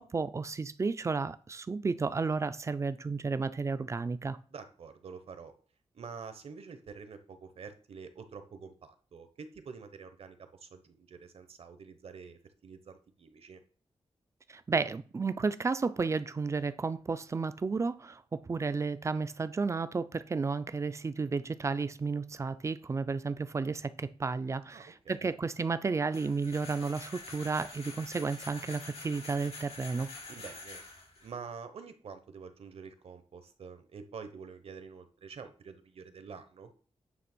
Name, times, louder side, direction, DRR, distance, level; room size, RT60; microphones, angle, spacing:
voice 1, 0.0-4.4 14.5-30.1, right 4 dB, 25° right, 0.4 m, -32 dB
voice 2, 4.5-5.5 5.9-13.6 24.7-25.3 30.3-30.8 31.2-36.7, right 5 dB, 65° right, 1.0 m, -47 dB
sound 1, 26.1-31.3, left 3 dB, 75° left, 4.0 m, -47 dB
9.5 x 3.4 x 6.1 m
wide cardioid pair, 170°, 11 cm